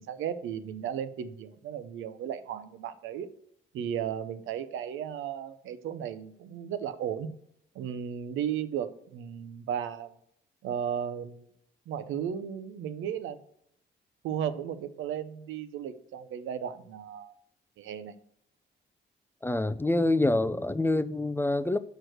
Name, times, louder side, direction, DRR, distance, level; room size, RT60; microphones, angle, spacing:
voice 1, 0.0-3.3 3.7-7.3 7.7-10.1 10.6-11.5 11.9-13.4 14.2-17.3 17.8-18.1, right 9 dB, 80° right, 0.7 m, -35 dB
voice 2, 19.4-21.8, left 2 dB, 10° left, 0.3 m, -26 dB
6.3 x 4.6 x 6.3 m
cardioid pair, 90°, 20 cm